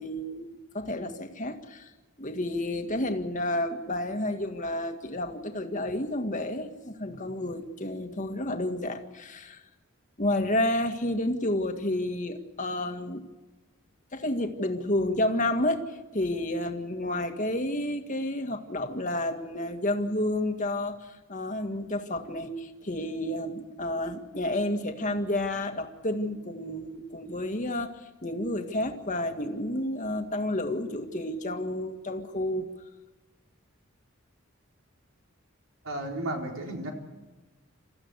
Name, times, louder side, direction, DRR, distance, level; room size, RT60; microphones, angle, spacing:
voice 1, 0.0-1.9 2.2-9.6 10.2-13.2 14.1-32.7, left 1 dB, 35° left, 5 dB, 1.9 m, -30 dB
voice 2, 35.8-36.9, right 1 dB, 75° right, 1 dB, 4.0 m, -33 dB
28.0 x 14.5 x 8.3 m, 1.2 s
head